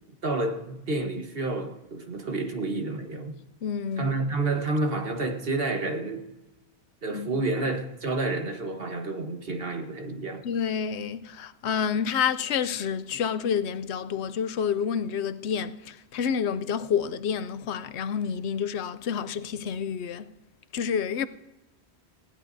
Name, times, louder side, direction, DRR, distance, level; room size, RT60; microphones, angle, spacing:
voice 1, 0.2-3.4 4.0-6.3 7.0-10.5, right 2 dB, 60° right, 1.5 m, -29 dB
voice 2, 3.6-4.1 7.1-7.4 10.4-20.3 20.7-21.3, left 7 dB, 90° left, 0.9 m, -29 dB
19.0 x 16.0 x 2.7 m
omnidirectional pair, 1.1 m